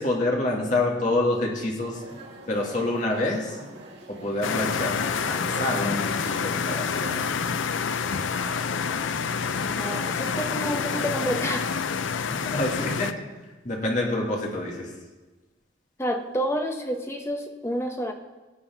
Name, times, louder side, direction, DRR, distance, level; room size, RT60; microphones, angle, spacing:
voice 1, 0.0-2.0 2.5-3.6 4.1-7.4 12.3-13.2 13.6-14.9, left 2 dB, 40° left, -1 dB, 2.1 m, -27 dB
sound 1, 1.9-11.0, right 1 dB, 60° right, 2.1 m, -43 dB
sound 2, 4.4-13.1, left 6 dB, 80° left, 0.5 m, -28 dB
voice 2, 9.8-11.7 16.0-18.1, equal, 15° left, 4 dB, 0.9 m, -29 dB
17.5 x 8.6 x 3.5 m, 1.2 s
head